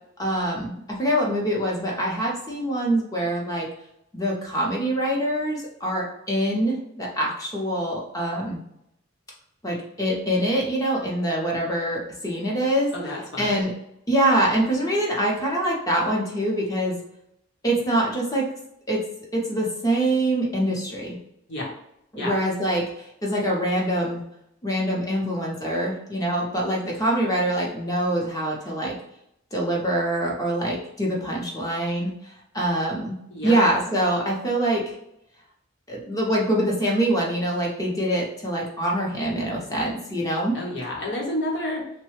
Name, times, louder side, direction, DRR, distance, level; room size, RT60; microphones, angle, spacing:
voice 1, 0.2-3.7 4.1-8.6 9.6-13.7 14.1-17.0 17.6-18.5 18.9-19.0 19.3-21.2 22.1-24.2 24.6-28.9 29.5-32.1 32.5-33.2 33.4-35.0 35.9-40.6, right 1 dB, 20° left, -3 dB, 0.7 m, -24 dB
voice 2, 12.9-13.5 21.5-21.7 22.2-22.3 33.3-33.6 40.5-41.9, left 1 dB, 60° left, -2 dB, 1.0 m, -30 dB
3.1 x 2.2 x 3.1 m, 0.78 s
head